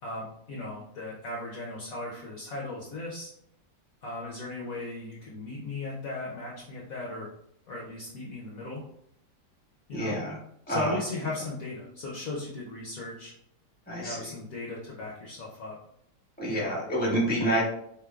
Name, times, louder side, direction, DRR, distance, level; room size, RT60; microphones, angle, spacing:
voice 1, 0.0-3.3 4.0-7.3 7.7-8.8 9.9-10.2 10.7-13.3 14.0-15.8 16.4-16.7 17.4-17.6, left 2 dB, 60° left, -4 dB, 1.0 m, -37 dB
voice 2, 9.9-10.4 10.7-11.0 13.9-14.2 16.4-17.6, right 1 dB, 5° left, -5 dB, 1.0 m, -28 dB
4.6 x 3.5 x 2.3 m, 0.72 s
omnidirectional pair, 2.0 m